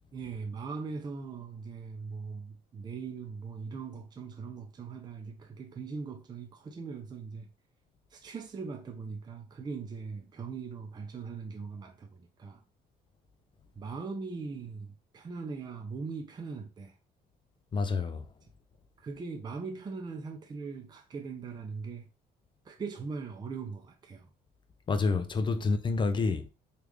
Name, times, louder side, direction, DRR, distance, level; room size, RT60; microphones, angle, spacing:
voice 1, 0.1-7.5 8.1-12.6 13.8-16.9 19.0-22.1 22.7-24.3, right 4 dB, 25° right, 0.5 m, -40 dB
voice 2, 17.7-18.2 24.9-26.5, left 4 dB, 30° left, 0.4 m, -28 dB
3.4 x 2.5 x 3.1 m
cardioid pair, 110°, 17 cm